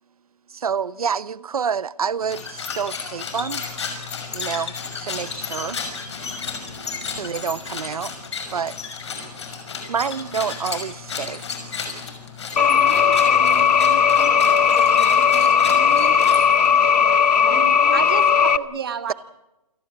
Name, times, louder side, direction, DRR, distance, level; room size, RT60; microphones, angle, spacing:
voice 1, 0.5-3.7 4.3-5.8 7.1-8.1 8.5-8.8 9.9-11.7, right 6 dB, 65° right, 0.9 m, -28 dB
sound 1, 2.2-16.8, left 5 dB, 45° left, 6.0 m, -33 dB
voice 2, 12.5-18.1, right 1 dB, 5° left, 6.1 m, -38 dB
sound 2, 12.6-18.6, left 7 dB, 85° left, 1.4 m, -17 dB
voice 3, 17.9-19.1, right 7 dB, 35° right, 1.9 m, -29 dB
28.5 x 17.5 x 8.6 m
hypercardioid pair, 180°, 20 cm